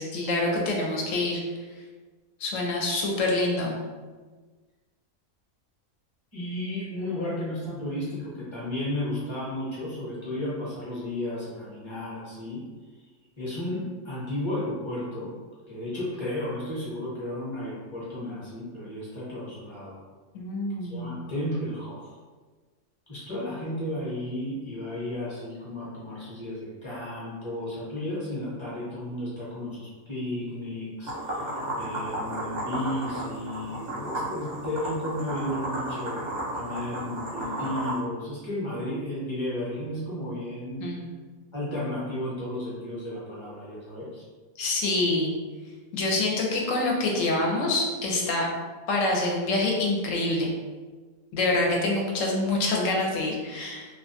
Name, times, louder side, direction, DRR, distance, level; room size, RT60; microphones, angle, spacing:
voice 1, 0.0-1.4 2.4-3.8 20.3-21.1 40.8-41.1 44.6-45.3 45.9-48.5 48.9-50.5 51.3-53.9, left 2 dB, 70° left, -1 dB, 0.9 m, -26 dB
voice 2, 6.3-12.6 13.4-15.3 15.7-20.0 20.8-22.1 23.1-31.5 31.8-40.9 41.5-44.2, left 1 dB, 25° left, -8 dB, 0.7 m, -33 dB
sound 1, 31.0-38.0, right 1 dB, 45° right, 0.6 m, -33 dB
2.4 x 2.2 x 2.7 m, 1.4 s
omnidirectional pair, 1.5 m